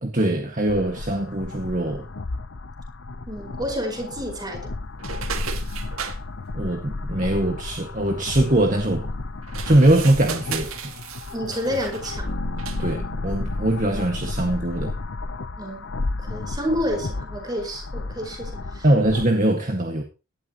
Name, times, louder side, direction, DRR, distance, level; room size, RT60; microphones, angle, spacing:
voice 1, 0.0-2.0 6.5-9.1 9.6-11.1 12.8-14.9 18.8-20.0, right 1 dB, 35° right, 1.9 m, -22 dB
sound 1, 0.7-19.3, left 2 dB, 60° left, 0.8 m, -32 dB
voice 2, 3.3-4.7 11.3-12.4 15.6-18.9, equal, 20° right, 5.2 m, -30 dB
sound 2, 5.0-6.2 9.4-12.2 12.6-12.9, right 7 dB, 75° right, 2.0 m, -35 dB
sound 3, 12.3-16.2, equal, 75° left, 3.9 m, -41 dB
18.0 x 12.5 x 3.1 m
head